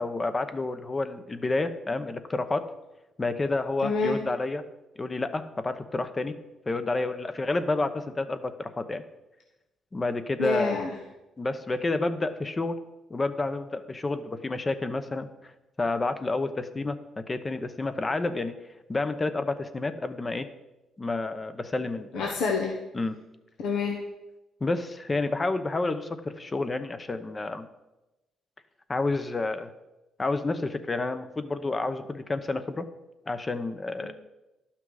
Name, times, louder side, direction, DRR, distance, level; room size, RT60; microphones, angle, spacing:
voice 1, 0.0-2.6 3.2-4.6 5.0-6.3 6.7-9.0 9.9-10.8 11.4-12.8 13.1-15.3 15.8-18.6 18.9-20.5 21.0-22.3 22.9-23.2 24.6-27.7 28.9-29.7 30.2-32.9 33.3-34.1, left 3 dB, 25° left, 10 dB, 0.8 m, -29 dB
voice 2, 3.8-4.2 10.4-10.9 22.1-22.7 23.6-24.0 34.0-34.1, left 4 dB, 80° left, 0 dB, 1.2 m, -27 dB
12.0 x 5.9 x 4.8 m, 1.0 s
cardioid pair, 90°, 0 cm